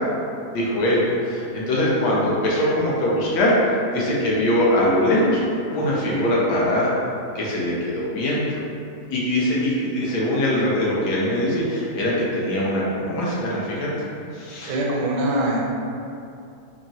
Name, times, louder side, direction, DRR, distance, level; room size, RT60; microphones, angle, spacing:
voice 1, 0.5-3.5 3.9-5.4 5.7-6.9 7.3-8.6 9.1-13.9 14.3-14.8, left 1 dB, 75° left, -5 dB, 1.2 m, -22 dB
voice 2, 14.7-15.6, right 1 dB, 85° right, -3 dB, 1.2 m, -23 dB
3.5 x 2.0 x 2.6 m, 2.5 s
omnidirectional pair, 1.8 m